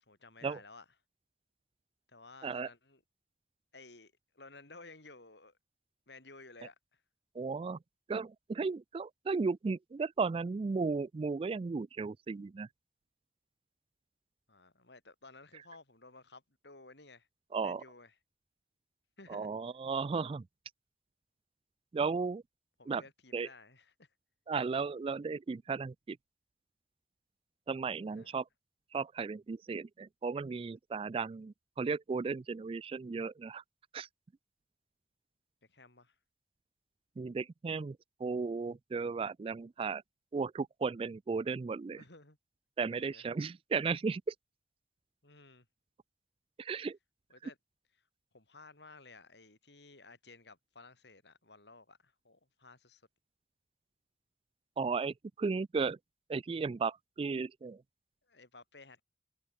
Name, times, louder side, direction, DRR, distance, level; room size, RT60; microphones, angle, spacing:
voice 1, 0.1-0.8 2.1-3.0 3.7-5.6 6.1-7.0 14.5-17.3 17.6-18.1 19.2-19.5 22.8-24.1 28.1-28.3 35.6-36.2 41.9-42.4 42.9-43.2 45.2-45.7 47.3-47.6 48.0-48.1 48.3-53.0 58.2-59.0, left 3 dB, 65° left, 4.5 m, -55 dB
voice 2, 7.4-7.8 8.1-12.7 17.5-17.8 19.3-20.5 21.9-22.4 22.9-23.0 23.3-23.5 24.5-26.2 27.7-28.5 28.9-33.6 33.9-34.1 37.2-40.0 40.3-42.0 42.8-44.3 46.6-47.0 54.8-56.0 56.3-57.8, right 4 dB, 30° right, 0.3 m, -35 dB
head